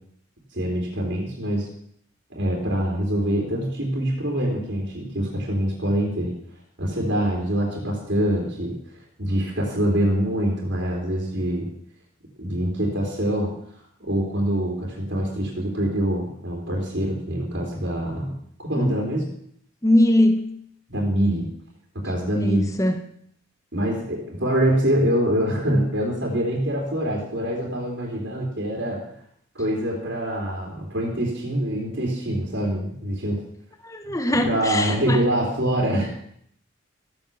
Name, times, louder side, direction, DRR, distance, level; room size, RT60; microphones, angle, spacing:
voice 1, 0.5-1.7 2.3-6.3 6.8-11.7 12.4-13.5 14.0-19.3 20.9-21.5 22.0-22.7 23.7-29.0 29.5-33.4 34.3-36.1, right 1 dB, 60° right, -2 dB, 3.9 m, -25 dB
voice 2, 19.8-20.5 22.4-23.0 33.8-35.2, left 1 dB, 15° left, 6 dB, 1.2 m, -21 dB
15.5 x 9.2 x 7.3 m, 0.67 s
head